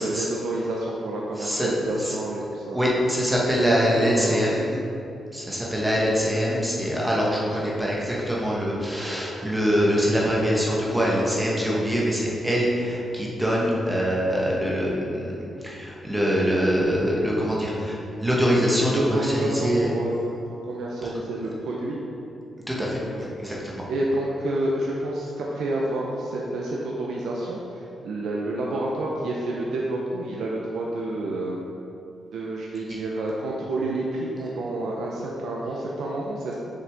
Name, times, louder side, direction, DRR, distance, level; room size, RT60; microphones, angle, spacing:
voice 1, 0.0-2.8 3.9-4.4 7.6-7.8 18.9-20.2 20.6-22.0 23.0-23.3 23.9-31.6 32.3-36.6, right 1 dB, 80° right, -3 dB, 0.8 m, -29 dB
voice 2, 1.4-2.1 2.7-4.8 5.3-18.0 18.2-19.9 22.7-23.9, equal, 10° right, -5 dB, 1.1 m, -24 dB
6.7 x 6.4 x 3.6 m, 2.7 s
wide cardioid pair, 145°, 0 cm